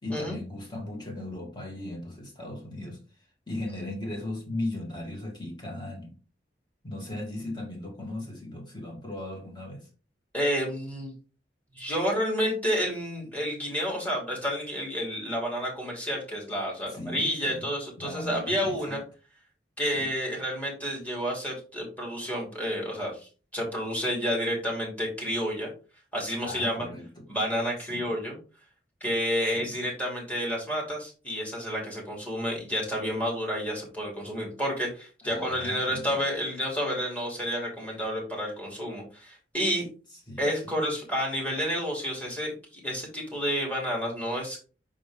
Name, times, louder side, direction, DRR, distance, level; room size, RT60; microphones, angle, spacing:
voice 1, 0.0-3.0 3.5-6.1 6.8-9.9 16.9-19.0 19.9-20.1 26.4-27.2 27.9-28.1 29.5-29.8 35.2-36.2 40.3-40.8, left 1 dB, 25° left, -1 dB, 2.0 m, -37 dB
voice 2, 10.3-11.1 11.7-19.0 19.8-25.7 26.1-26.9 27.3-28.4 29.0-39.8 40.4-44.6, equal, 10° left, -3 dB, 2.8 m, -30 dB
5.3 x 5.1 x 3.6 m, 0.35 s
head